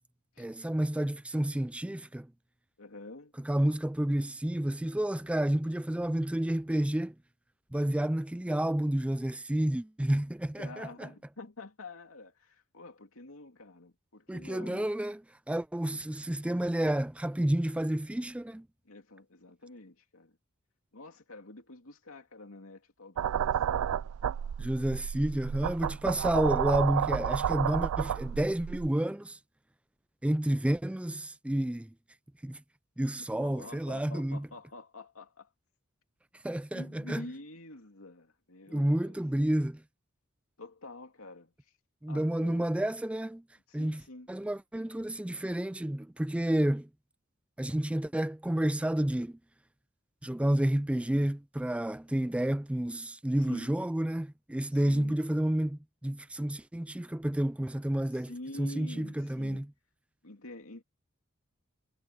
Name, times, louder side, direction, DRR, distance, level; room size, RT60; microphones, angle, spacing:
voice 1, 0.4-2.3 3.4-7.1 7.7-10.9 14.3-15.2 15.5-18.7 24.6-29.4 30.2-31.9 32.4-32.6 33.0-34.5 36.4-37.3 38.7-39.8 42.0-43.4 43.7-44.0 44.3-46.9 47.6-49.4 50.2-58.3 58.6-59.7, right 1 dB, 5° right, 0.3 m, -30 dB
voice 2, 2.8-3.3 10.6-14.9 15.9-16.0 18.8-20.4 20.9-24.0 33.2-35.5 36.7-39.2 40.6-41.8 42.1-42.7 43.7-44.3 53.4-53.7 54.7-55.2 58.1-59.7 60.2-60.8, left 2 dB, 75° left, 2.7 m, -48 dB
sound 1, 23.2-28.9, right 9 dB, 85° right, 0.3 m, -31 dB
head